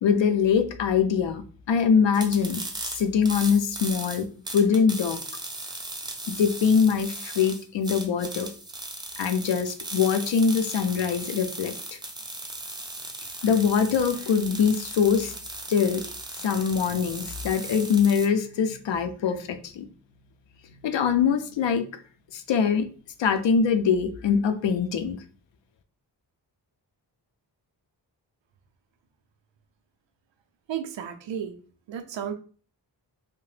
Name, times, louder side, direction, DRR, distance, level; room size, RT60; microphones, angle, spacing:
voice 1, 0.0-1.4 1.7-2.6 2.9-4.3 4.5-5.2 6.3-8.5 9.2-11.7 13.4-15.3 15.7-16.0 16.4-19.8 20.8-21.8 22.3-22.9 23.2-25.2, left 6 dB, 85° left, 8 dB, 0.5 m, -23 dB
sound 1, 2.1-18.3, right 2 dB, 10° right, 0.3 m, -37 dB
voice 2, 30.7-31.5 31.9-32.3, right 9 dB, 90° right, 6 dB, 0.5 m, -33 dB
2.8 x 2.1 x 3.1 m, 0.40 s
wide cardioid pair, 130°, 43 cm